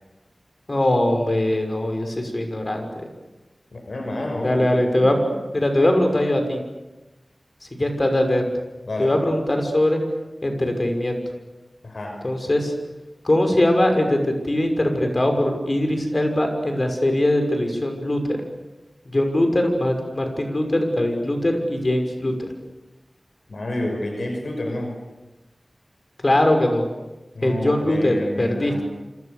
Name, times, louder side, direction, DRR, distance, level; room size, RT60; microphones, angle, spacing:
voice 1, 0.7-2.9 4.4-5.2 5.5-6.6 7.7-8.5 9.0-10.0 10.4-11.2 12.2-12.7 13.2-18.4 19.0-22.3 26.2-26.9 27.4-28.8, left 1 dB, 45° left, 5 dB, 6.2 m, -21 dB
voice 2, 3.7-4.6 5.0-5.3 8.9-9.1 11.8-12.2 23.5-24.9 27.3-28.8, left 1 dB, 80° left, 3 dB, 6.0 m, -29 dB
28.5 x 26.5 x 6.9 m, 1.1 s
wide cardioid pair, 70°, 0 cm